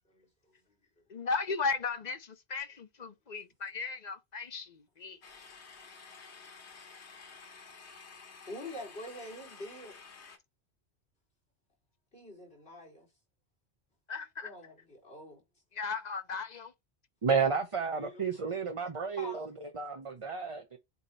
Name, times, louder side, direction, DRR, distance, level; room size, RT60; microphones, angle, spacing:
voice 1, 1.1-5.2 14.1-14.5 15.7-16.7, left 4 dB, 45° left, 0.8 m, -36 dB
sound 1, 5.2-10.4, left 5 dB, 85° left, 1.5 m, -52 dB
voice 2, 8.5-10.0 12.1-13.1 14.4-15.4 17.9-18.6 19.2-19.5, left 1 dB, 65° left, 3.8 m, -45 dB
voice 3, 17.2-20.8, right 5 dB, 35° right, 0.8 m, -32 dB
8.2 x 2.9 x 4.2 m
omnidirectional pair, 1.1 m